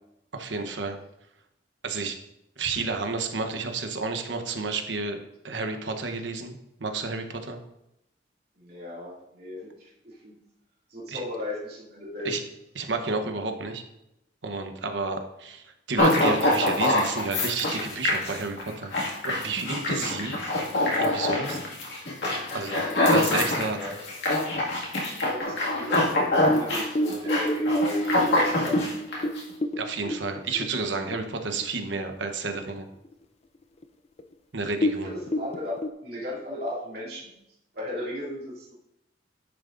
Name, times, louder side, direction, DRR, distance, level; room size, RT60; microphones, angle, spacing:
voice 1, 0.3-1.0 1.8-2.2 2.6-7.6 11.1-11.2 12.2-12.4 12.7-13.8 14.4-18.9 19.2-20.4 21.0-21.6 22.5-22.7 23.1-23.8 29.8-32.9 34.5-35.1, right 3 dB, 90° right, 6 dB, 1.0 m, -31 dB
voice 2, 8.6-9.7 10.0-10.4 10.9-12.3 22.5-23.0 23.7-24.0 25.2-28.0 28.2-28.8 35.0-37.3 37.7-38.7, left 1 dB, 60° right, -6 dB, 2.6 m, -35 dB
sound 1, 16.0-29.4, left 1 dB, 75° left, 2.0 m, -25 dB
sound 2, 25.4-31.3 31.6-31.7 32.1-32.6 33.1-33.2 33.8-33.9 34.2-34.3 34.7-35.9, equal, 35° left, 0.4 m, -29 dB
10.5 x 7.1 x 2.6 m, 0.85 s
head